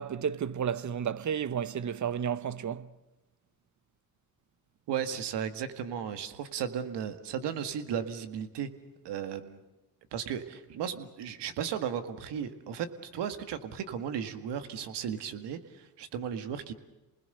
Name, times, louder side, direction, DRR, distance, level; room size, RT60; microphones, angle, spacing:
voice 1, 0.0-2.9, right 8 dB, 45° right, 1.0 m, -32 dB
voice 2, 4.9-8.7 9.0-9.6 10.1-16.7, right 8 dB, 75° right, 2.0 m, -35 dB
28.5 x 20.5 x 6.8 m
supercardioid pair, 75°, 41 cm